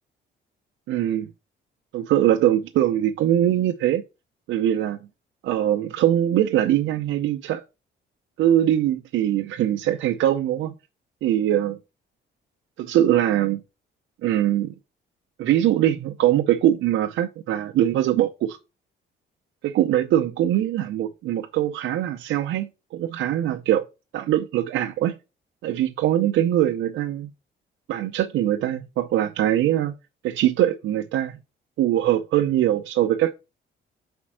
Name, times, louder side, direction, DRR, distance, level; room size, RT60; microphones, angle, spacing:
voice 1, 0.9-1.3 1.9-4.0 4.5-5.0 5.4-7.6 8.4-10.7 11.2-11.8 12.8-13.6 14.2-14.7 15.4-18.6 19.6-23.8 24.1-25.1 25.6-27.3 27.9-29.9 30.2-31.4 31.8-33.3, right 12 dB, 80° right, 0.6 m, -22 dB
5.2 x 4.3 x 6.1 m
cardioid pair, 90°, 20 cm